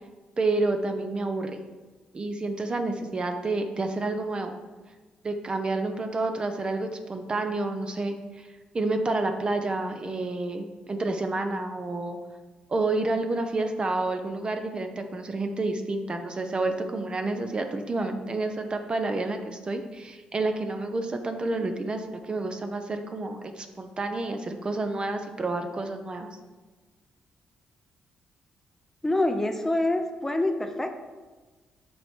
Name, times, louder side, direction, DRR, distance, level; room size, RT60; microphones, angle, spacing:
voice 1, 0.4-1.6 2.1-4.6 5.2-8.5 8.7-12.2 12.7-26.3, right 2 dB, 35° right, 6 dB, 0.8 m, -29 dB
voice 2, 29.0-31.0, left 1 dB, 15° left, 6 dB, 0.7 m, -26 dB
7.6 x 5.1 x 4.5 m, 1.3 s
cardioid pair, 80°, 3 cm